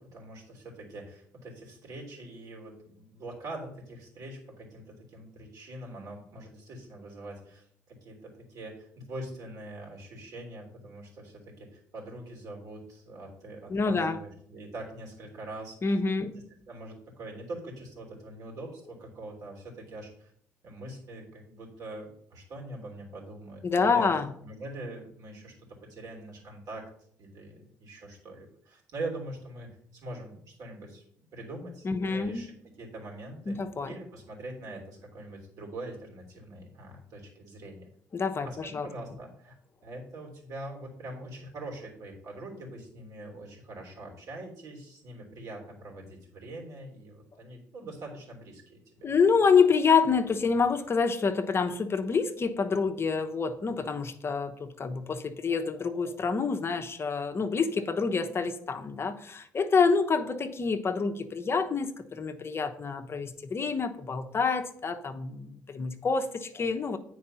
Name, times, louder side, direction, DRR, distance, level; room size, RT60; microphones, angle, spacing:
voice 1, 0.0-16.3 16.7-20.3 20.6-24.1 24.4-26.9 27.2-31.0 31.3-33.6 33.8-37.9 38.4-39.6 39.8-49.1, right 2 dB, 65° right, 0 dB, 3.4 m, -43 dB
voice 2, 13.7-14.2 15.8-16.4 23.6-24.3 31.8-32.4 33.5-33.9 38.1-38.9 49.0-67.0, left 5 dB, 40° left, 7 dB, 0.9 m, -27 dB
8.6 x 4.7 x 5.6 m, 0.67 s
supercardioid pair, 65°, 6 cm